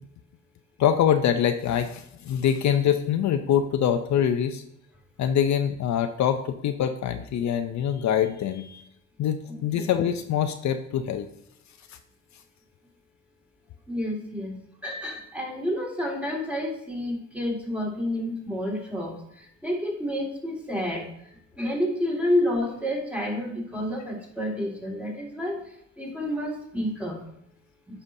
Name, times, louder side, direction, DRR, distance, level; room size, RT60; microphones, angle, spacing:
voice 1, 0.8-4.6 5.2-8.8 9.2-11.3, left 9 dB, 65° left, 8 dB, 0.5 m, -24 dB
voice 2, 13.9-14.5 14.8-21.1 21.6-25.6 26.0-27.2, left 1 dB, 5° right, -2 dB, 2.0 m, -29 dB
9.6 x 5.6 x 2.7 m, 0.75 s
cardioid pair, 95°, 31 cm